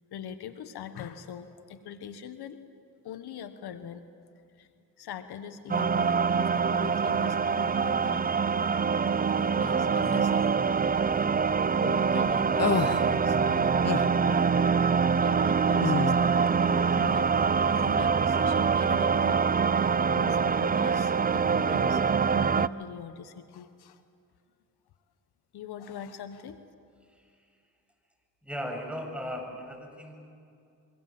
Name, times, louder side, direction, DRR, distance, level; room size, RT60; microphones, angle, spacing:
voice 1, 0.1-2.6 3.0-4.1 4.6-4.7 5.0-8.3 8.5-8.7 9.3-11.1 11.8-14.8 15.2-16.3 16.6-17.3 17.7-19.8 20.1-22.0 22.3-24.0 25.5-26.6, left 8 dB, 80° left, 10 dB, 1.4 m, -42 dB
sound 1, 5.7-22.7, right 5 dB, 25° right, 0.6 m, -25 dB
sound 2, 12.6-13.0 13.8-14.1 15.8-16.2, left 6 dB, 40° left, 1.1 m, -27 dB
voice 2, 28.4-30.2, equal, 5° right, 3 dB, 7.5 m, -37 dB
26.0 x 24.0 x 7.7 m, 2.5 s
supercardioid pair, 60°, 38 cm